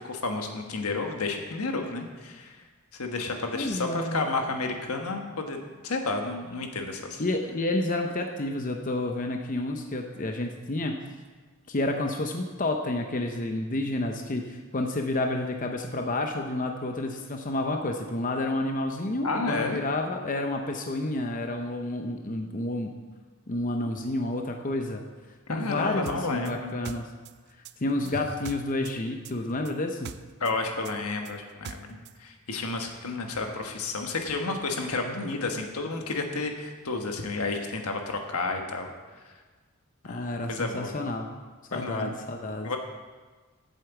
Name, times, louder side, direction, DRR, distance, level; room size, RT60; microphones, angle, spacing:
voice 1, 0.0-2.6 2.9-5.6 5.8-7.2 19.2-19.8 25.5-26.7 28.0-28.1 30.4-38.9 39.2-39.3 40.0-41.0 41.7-42.2 42.6-42.8, left 3 dB, 85° left, 4 dB, 1.4 m, -31 dB
voice 2, 3.5-4.2 7.2-10.9 11.7-22.9 23.5-25.0 25.5-27.1 27.8-30.1 40.0-41.3 41.7-42.8, left 2 dB, 35° left, 4 dB, 0.7 m, -30 dB
sound 1, 26.1-29.0 29.2-32.2, right 7 dB, 50° right, 0.4 m, -42 dB
8.5 x 7.9 x 6.9 m, 1.4 s
head